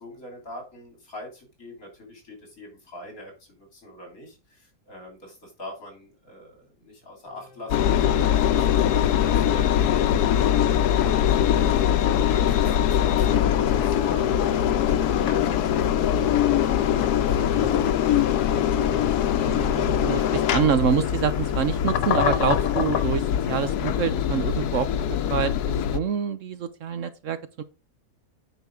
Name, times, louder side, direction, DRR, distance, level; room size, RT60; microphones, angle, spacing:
voice 1, 0.0-19.6, left 1 dB, 65° left, 3.8 m, -44 dB
sound 1, 7.2-21.0, left 2 dB, 40° left, 4.4 m, -51 dB
Engine, 7.7-26.0, left 10 dB, 85° left, 1.2 m, -22 dB
voice 2, 19.4-25.0 25.3-25.5 25.9-27.6, right 7 dB, 60° right, 1.0 m, -26 dB
9.3 x 4.9 x 4.8 m
omnidirectional pair, 1.6 m